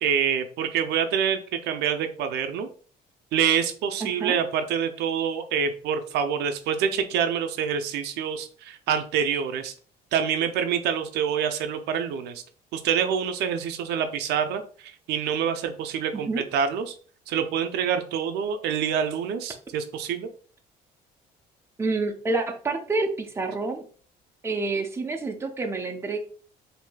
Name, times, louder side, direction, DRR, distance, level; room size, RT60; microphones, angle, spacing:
voice 1, 0.0-2.7 3.3-9.7 10.1-12.4 12.7-17.0 17.3-20.3, right 8 dB, 80° right, 8 dB, 0.5 m, -26 dB
voice 2, 4.0-4.4 16.1-16.4 21.8-23.8 24.4-26.2, right 3 dB, 15° right, 3 dB, 0.6 m, -28 dB
4.6 x 2.6 x 2.2 m, 0.43 s
cardioid pair, 110°, 17 cm